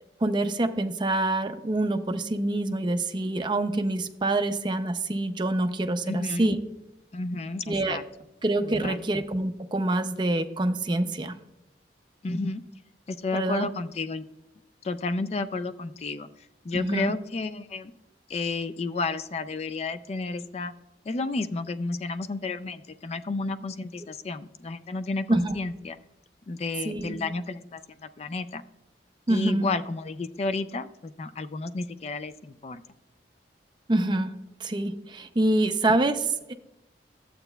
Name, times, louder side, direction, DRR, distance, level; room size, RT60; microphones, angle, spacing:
voice 1, 0.2-6.6 7.7-8.0 8.4-11.3 13.3-13.7 16.7-17.1 25.3-25.6 26.8-27.2 29.3-29.7 33.9-34.4 34.6-36.5, right 2 dB, 25° right, 8 dB, 0.5 m, -26 dB
voice 2, 6.0-6.6 7.1-8.0 8.8-9.0 12.2-12.6 13.1-14.2 14.8-16.3 16.6-17.9 18.3-20.7 21.1-26.0 26.5-27.8 28.2-28.6 29.3-32.8, left 3 dB, 35° left, 12 dB, 0.3 m, -31 dB
12.0 x 7.9 x 2.2 m, 0.93 s
head